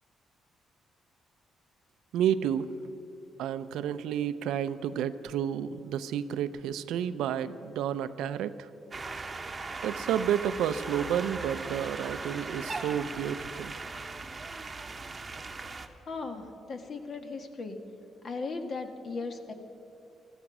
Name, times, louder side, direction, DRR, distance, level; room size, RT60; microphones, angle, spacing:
voice 1, 2.1-2.7 3.4-8.7 9.8-13.8, right 9 dB, 85° right, 13 dB, 0.5 m, -31 dB
sound 1, 8.9-15.9, right 3 dB, 25° right, 1.0 m, -38 dB
voice 2, 16.1-17.8 18.2-19.5, left 4 dB, 45° left, 6 dB, 1.5 m, -37 dB
15.5 x 13.5 x 6.1 m, 2.8 s
cardioid pair, 90°, 0 cm